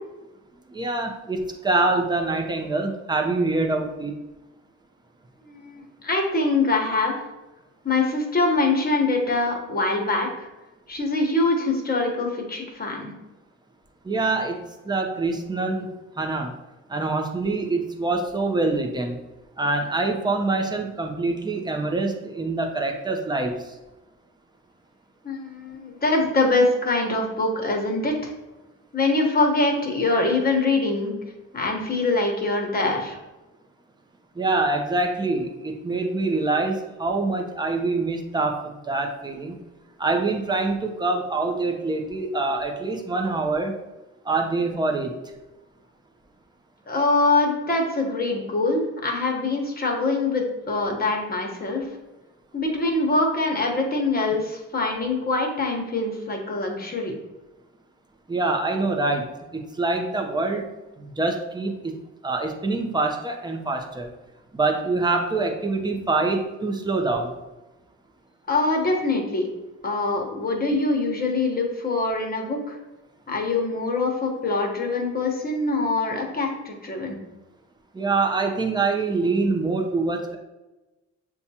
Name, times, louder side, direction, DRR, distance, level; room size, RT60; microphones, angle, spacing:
voice 1, 0.7-4.1 14.0-16.5 16.9-19.2 19.6-23.7 34.4-39.6 40.0-43.8 44.2-45.1 58.3-60.7 61.0-62.0 62.2-64.1 64.5-67.3 77.9-80.4, right 3 dB, 15° right, 3 dB, 0.6 m, -25 dB
voice 2, 5.4-7.1 7.8-10.5 10.9-13.1 25.2-28.3 28.9-31.1 31.5-33.2 46.9-51.8 52.5-57.1 68.5-69.4 69.8-72.8 73.3-77.2, left 2 dB, 30° left, 1 dB, 1.1 m, -24 dB
6.9 x 2.3 x 2.8 m, 1.1 s
cardioid pair, 90°, 30 cm